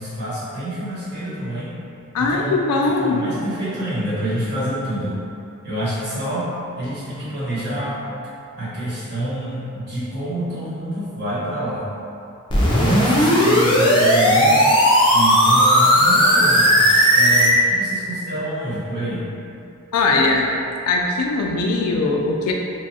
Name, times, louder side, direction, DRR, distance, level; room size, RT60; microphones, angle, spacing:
voice 1, 0.0-1.8 2.2-5.2 5.6-8.0 8.6-11.9 12.6-14.7 15.1-19.3, right 1 dB, 50° right, -10 dB, 1.1 m, -27 dB
voice 2, 2.1-3.2 19.9-20.5 20.9-22.5, left 3 dB, 85° left, 1 dB, 0.3 m, -20 dB
sound 1, 12.5-17.5, equal, 20° left, 0.4 m, -15 dB
3.0 x 2.3 x 2.8 m, 2.6 s
head